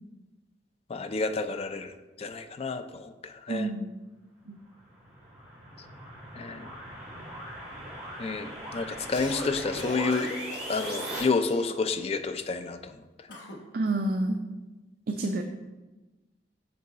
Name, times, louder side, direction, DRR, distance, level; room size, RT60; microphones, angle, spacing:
voice 1, 0.9-3.7 6.3-6.7 8.2-10.3 10.7-13.3, left 4 dB, 35° left, 9 dB, 0.4 m, -30 dB
voice 2, 3.5-3.9 4.5-4.6 13.7-14.4 15.1-15.4, right 2 dB, 55° right, 4 dB, 0.4 m, -28 dB
sound 1, 4.7-11.2, equal, 5° right, 2.1 m, -39 dB
Cough, 9.1-9.5 9.8-10.8 11.5-12.1 13.3-13.6, left 1 dB, 70° left, 1.0 m, -40 dB
5.6 x 5.3 x 3.9 m, 1.2 s
head